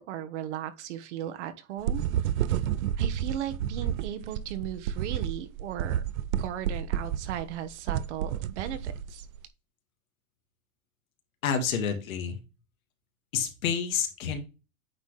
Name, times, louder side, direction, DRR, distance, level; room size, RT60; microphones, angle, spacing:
voice 1, 0.0-2.0 3.0-6.0 6.4-9.3, right 10 dB, 60° right, 1.2 m, -36 dB
sound 1, 1.8-9.4, right 10 dB, 85° right, 0.6 m, -30 dB
voice 2, 11.4-12.4 13.3-14.4, left 7 dB, 85° left, 1.9 m, -29 dB
9.0 x 4.1 x 3.2 m
supercardioid pair, 150°, 40 cm